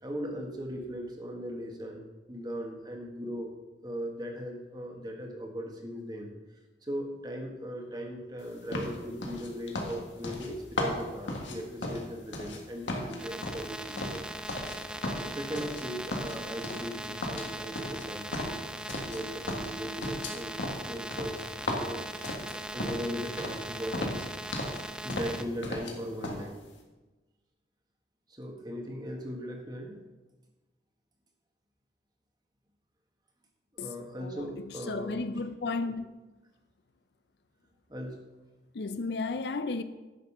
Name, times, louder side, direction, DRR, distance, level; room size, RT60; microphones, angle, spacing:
voice 1, 0.0-2.0 2.3-3.5 3.8-6.3 6.8-14.2 15.2-18.6 19.0-20.6 20.9-22.3 22.7-24.1 25.0-26.6 28.3-30.0 33.7-35.4 37.9-38.2, equal, 20° right, 1.4 m, -38 dB
sound 1, 8.7-12.6 12.9-14.8 15.0-15.8 16.1-17.0 17.2-19.2 19.5-23.1 23.4-23.7 23.9-24.8 25.1-26.0 26.2-26.4, left 1 dB, 85° left, 1.8 m, -35 dB
sound 2, 13.2-25.4, right 1 dB, 5° right, 0.3 m, -40 dB
voice 2, 34.2-36.1 38.7-39.8, left 3 dB, 60° left, 0.5 m, -34 dB
10.5 x 6.5 x 5.6 m
head